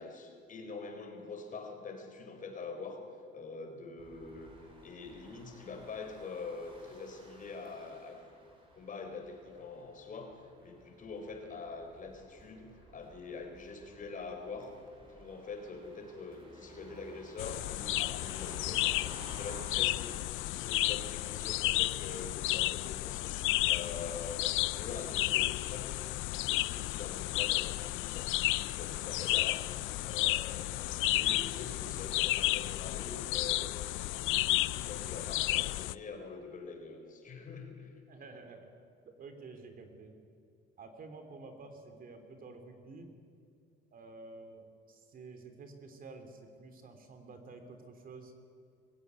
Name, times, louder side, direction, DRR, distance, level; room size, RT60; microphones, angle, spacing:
voice 1, 0.0-3.0 3.3-4.5 4.8-8.3 8.7-14.7 15.1-18.9 19.3-26.1 26.3-29.6 30.0-33.7 34.2-37.9, left 4 dB, 40° left, 4 dB, 4.2 m, -45 dB
sound 1, 4.0-20.1, right 1 dB, 25° right, 5.6 m, -55 dB
sound 2, 17.4-35.9, left 18 dB, 80° left, 0.5 m, -32 dB
voice 2, 38.1-38.7 39.0-40.1 40.8-43.1 43.9-48.3, right 3 dB, 45° right, 6 dB, 3.2 m, -50 dB
24.0 x 16.0 x 9.7 m, 2.4 s
cardioid pair, 120°, 20 cm